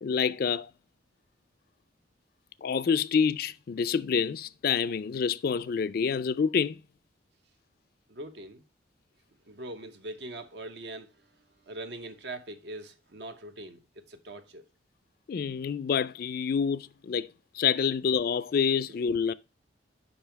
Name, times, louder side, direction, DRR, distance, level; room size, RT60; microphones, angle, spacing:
voice 1, 0.0-0.7 2.6-6.8 15.3-17.3 17.5-19.3, left 6 dB, 55° left, 0.4 m, -27 dB
voice 2, 8.1-8.6 9.5-11.3 11.6-14.6 18.9-19.0, right 2 dB, 70° right, 0.9 m, -42 dB
5.5 x 5.3 x 4.5 m
head